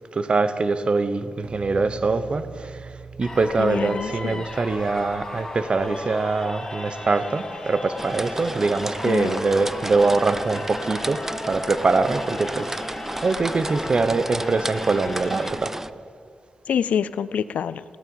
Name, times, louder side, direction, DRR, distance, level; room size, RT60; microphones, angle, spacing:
voice 1, 0.1-12.8 13.2-15.8, right 3 dB, 50° right, 12 dB, 0.8 m, -23 dB
sound 1, 1.4-6.7, right 5 dB, 75° right, 0.6 m, -43 dB
sound 2, 3.2-15.5, left 2 dB, 25° left, 2.5 m, -36 dB
voice 2, 3.6-4.4 9.0-9.3 16.7-17.8, left 8 dB, 85° left, 16 dB, 0.4 m, -26 dB
sound 3, 8.0-15.9, right 1 dB, 15° right, 0.4 m, -33 dB
16.0 x 8.9 x 7.1 m, 2.4 s
cardioid pair, 60°, 2 cm